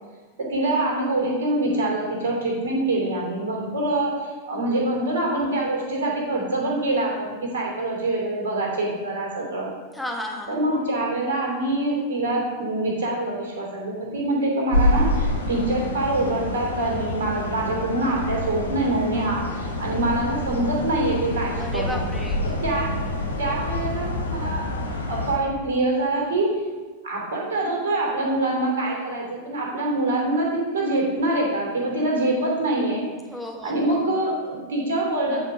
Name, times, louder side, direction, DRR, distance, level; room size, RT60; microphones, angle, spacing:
voice 1, 0.4-9.7 10.5-22.1 22.4-23.1 23.4-24.6 25.1-26.5 27.0-33.0 33.6-35.4, right 2 dB, 60° right, -2 dB, 2.8 m, -25 dB
voice 2, 9.9-10.6 21.6-22.5 33.3-34.1, left 1 dB, 5° left, 0 dB, 1.5 m, -33 dB
sound 1, 14.7-25.4, left 1 dB, 75° left, 1.2 m, -27 dB
9.0 x 5.3 x 5.2 m, 1.4 s
figure-of-eight pair, 90°, 0 cm